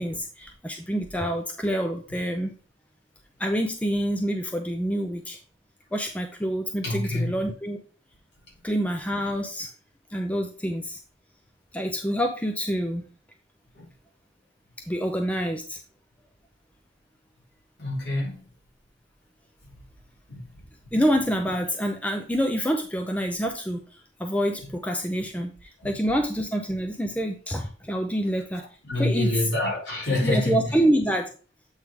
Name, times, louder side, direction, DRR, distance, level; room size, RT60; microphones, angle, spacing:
voice 1, 0.0-2.6 3.4-5.4 5.9-7.8 8.6-9.7 10.1-11.0 11.7-13.0 14.9-15.8 20.9-23.8 24.2-28.6 29.0-29.3 30.2-31.3, equal, 5° left, 0.6 m, -27 dB
voice 2, 6.8-7.5 13.8-13.9 17.8-18.4 20.3-20.5 28.6-30.7, left 2 dB, 65° left, 3.5 m, -27 dB
8.1 x 3.7 x 4.7 m
head